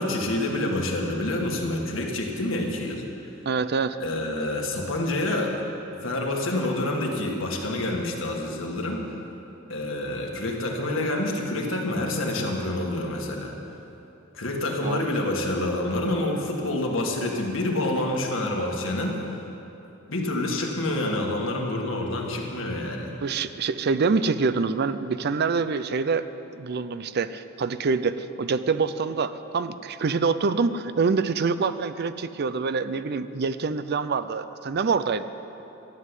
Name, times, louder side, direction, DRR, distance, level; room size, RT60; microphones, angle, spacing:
voice 1, 0.0-3.0 4.0-5.6 6.0-9.2 9.7-13.5 14.3-19.4 20.1-23.1, left 1 dB, 70° left, 0 dB, 1.9 m, -27 dB
voice 2, 3.5-4.0 14.8-15.0 23.2-26.3 26.5-35.3, right 4 dB, 50° right, 13 dB, 0.5 m, -25 dB
13.0 x 7.6 x 9.8 m, 3.0 s
head